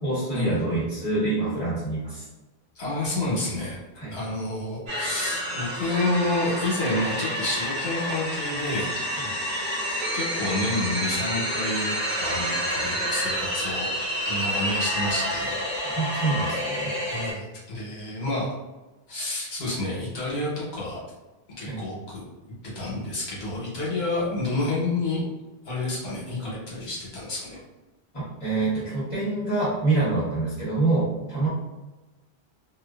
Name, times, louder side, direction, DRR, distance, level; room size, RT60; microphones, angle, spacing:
voice 1, 0.0-2.3 3.9-4.2 9.1-9.3 15.9-16.9 21.6-21.8 28.1-31.5, right 3 dB, 35° left, -10 dB, 1.0 m, -26 dB
voice 2, 2.8-3.8 4.1-8.9 9.9-13.9 14.2-15.7 17.1-18.5 19.1-21.0 21.6-22.2 22.7-25.2 25.6-27.6, left 2 dB, 80° left, -6 dB, 1.1 m, -29 dB
sound 1, 4.9-17.3, equal, 50° right, 1.0 m, -29 dB
2.5 x 2.2 x 2.3 m, 1.1 s
omnidirectional pair, 1.1 m